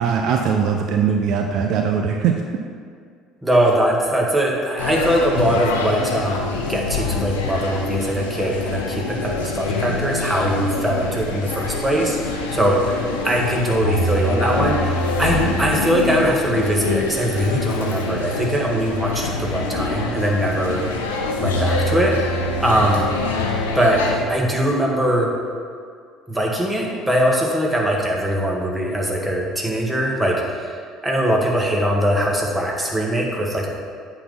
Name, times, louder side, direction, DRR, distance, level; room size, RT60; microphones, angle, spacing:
voice 1, 0.0-2.3, right 7 dB, 60° right, 3 dB, 0.5 m, -20 dB
voice 2, 3.4-20.8 21.4-23.0 23.7-24.0 24.3-25.3 26.3-30.8 31.0-33.7, right 1 dB, 15° right, -2 dB, 1.8 m, -21 dB
sound 1, 4.8-24.2, left 2 dB, 85° left, 0.7 m, -25 dB
8.3 x 4.0 x 5.5 m, 2.1 s
hypercardioid pair, 65°, 0 cm